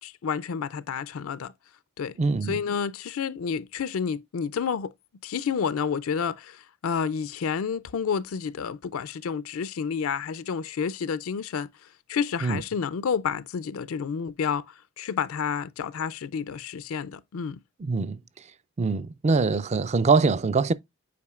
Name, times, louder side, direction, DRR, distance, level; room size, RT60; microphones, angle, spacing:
voice 1, 0.0-1.5 2.0-2.2 2.4-4.9 5.2-11.7 12.1-17.6, left 6 dB, 75° left, 0.4 m, -30 dB
voice 2, 2.2-2.6 12.4-12.6 17.8-18.4 18.8-20.7, right 4 dB, 30° right, 0.4 m, -23 dB
8.5 x 4.8 x 2.4 m
head